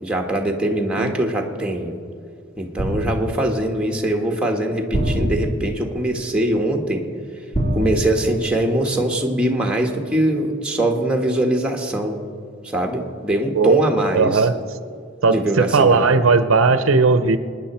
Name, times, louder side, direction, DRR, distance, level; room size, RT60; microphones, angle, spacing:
voice 1, 0.0-1.9 2.6-7.0 7.7-12.2 12.6-14.5 15.3-16.1, right 1 dB, 5° right, 2 dB, 1.3 m, -22 dB
sound 1, 2.8-3.5 4.9-5.9 7.5-8.6 8.9-9.2, equal, 35° left, 3.4 m, -24 dB
voice 2, 14.1-14.5 15.2-17.4, right 4 dB, 85° right, 11 dB, 0.7 m, -16 dB
25.0 x 9.9 x 4.3 m, 2.2 s
head